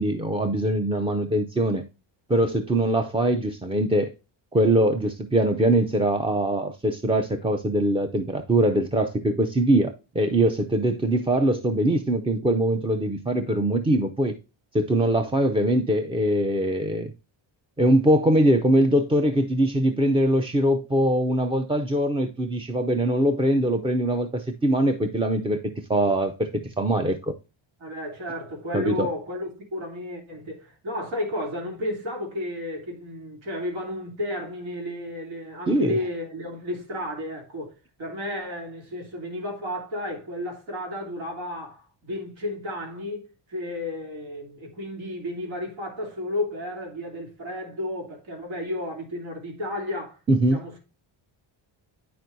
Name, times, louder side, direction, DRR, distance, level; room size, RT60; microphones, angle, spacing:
voice 1, 0.0-1.8 2.3-4.1 4.5-14.4 14.7-17.1 17.8-27.3 28.7-29.1 35.7-35.9 50.3-50.6, right 1 dB, 15° right, 0.4 m, -22 dB
voice 2, 27.8-37.7 38.0-50.2 50.5-50.8, left 1 dB, 80° right, 3.0 m, -32 dB
9.2 x 5.9 x 2.6 m
cardioid pair, 140°, 47 cm